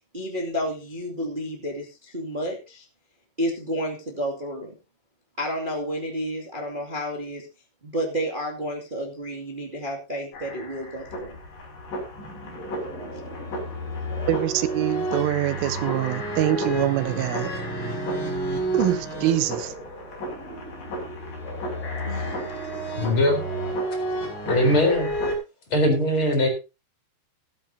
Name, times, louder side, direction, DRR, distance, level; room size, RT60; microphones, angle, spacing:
voice 1, 0.1-2.8 3.4-4.7 5.4-7.5 7.8-11.4 22.0-22.3, equal, 40° right, 0.7 m, -31 dB
sound 1, 10.3-25.4, right 1 dB, 45° left, 7.7 m, -31 dB
voice 2, 14.3-17.5 18.7-19.7, right 13 dB, 85° right, 3.6 m, -24 dB
voice 3, 23.0-23.4 24.4-25.1 25.7-26.5, left 1 dB, 30° left, 4.4 m, -20 dB
15.0 x 13.5 x 2.8 m
omnidirectional pair, 5.6 m